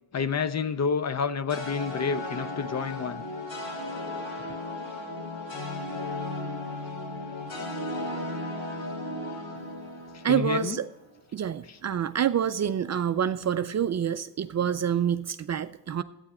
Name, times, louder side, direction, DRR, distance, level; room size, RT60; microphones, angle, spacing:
voice 1, 0.1-3.2 6.4-6.5 10.1-10.8 11.7-11.8, left 6 dB, 35° left, 14 dB, 0.5 m, -29 dB
sound 1, 1.5-10.8, left 2 dB, 85° left, 3.4 m, -35 dB
voice 2, 10.2-10.8 11.3-16.0, right 8 dB, 35° right, 11 dB, 0.4 m, -27 dB
12.0 x 8.9 x 4.2 m, 0.99 s
cardioid pair, 100°, 47 cm